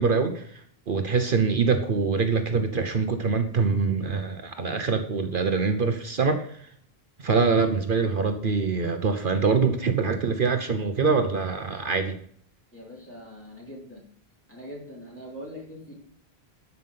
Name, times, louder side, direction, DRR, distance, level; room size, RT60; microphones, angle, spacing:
voice 1, 0.0-6.6 7.2-12.2, right 4 dB, 55° right, 7 dB, 1.0 m, -24 dB
voice 2, 12.7-14.0 14.5-16.1, equal, 10° left, -4 dB, 3.1 m, -42 dB
12.5 x 5.7 x 5.7 m, 0.62 s
omnidirectional pair, 1.1 m